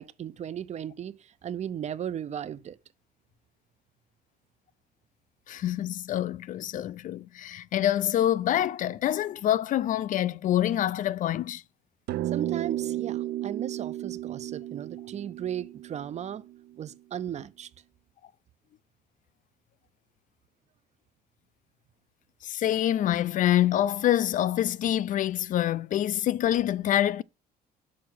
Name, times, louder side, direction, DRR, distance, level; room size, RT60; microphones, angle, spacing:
voice 1, 0.0-2.8 12.3-16.4 16.8-17.7, right 9 dB, 40° right, 0.6 m, -36 dB
voice 2, 5.5-11.6 22.4-27.2, left 12 dB, 50° left, 0.4 m, -26 dB
sound 1, 12.1-16.7, right 14 dB, 75° right, 0.7 m, -33 dB
6.3 x 5.7 x 6.1 m
cardioid pair, 110°, 17 cm